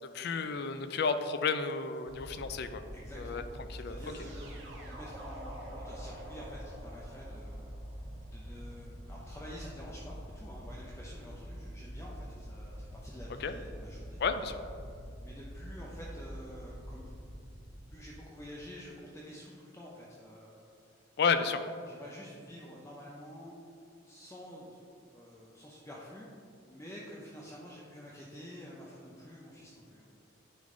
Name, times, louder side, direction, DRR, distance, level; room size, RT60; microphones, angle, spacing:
voice 1, 0.0-2.8 3.2-3.4 3.7-4.0 13.4-13.5 14.2-14.6 21.2-21.6, left 5 dB, 55° left, 10 dB, 0.4 m, -31 dB
sound 1, 2.1-18.6, equal, 75° right, 0.9 m, -46 dB
voice 2, 2.9-3.5 3.7-7.6 8.3-14.2 15.2-17.2 17.9-20.7 21.8-23.6 24.0-26.3 26.7-30.1, equal, 15° left, -5 dB, 0.6 m, -49 dB
sound 2, 4.0-8.9, right 1 dB, 60° right, 1.5 m, -50 dB
9.5 x 3.8 x 3.8 m, 2.4 s
head